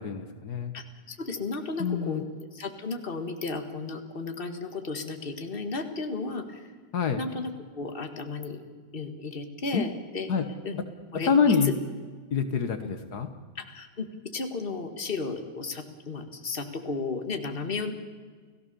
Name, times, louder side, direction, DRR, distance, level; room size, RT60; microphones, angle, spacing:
voice 1, 0.0-0.7 1.8-2.2 6.9-7.2 9.7-9.8 10.3-10.5 11.2-11.7 12.3-13.3, left 6 dB, 65° left, 8 dB, 1.8 m, -26 dB
voice 2, 0.7-6.7 7.2-8.6 8.9-10.3 10.6-10.8 11.1-11.7 12.8-13.0 13.6-17.9, left 3 dB, 30° left, 6 dB, 2.1 m, -34 dB
29.5 x 17.0 x 7.0 m, 1.5 s
omnidirectional pair, 1.8 m